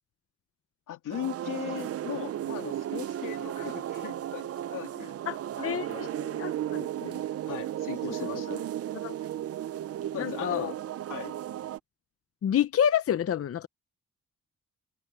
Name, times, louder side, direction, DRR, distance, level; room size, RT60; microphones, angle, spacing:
voice 1, 0.9-5.1 5.6-6.2 7.5-8.7 10.1-10.7 11.1-11.3, left 12 dB, 90° left, 2.1 m, -38 dB
sound 1, 1.1-11.8, right 12 dB, 50° right, 0.5 m, -35 dB
voice 2, 5.3-7.2 9.0-9.2 10.2-10.7 12.4-13.7, left 9 dB, 50° left, 0.7 m, -29 dB
open air
cardioid pair, 110°, 31 cm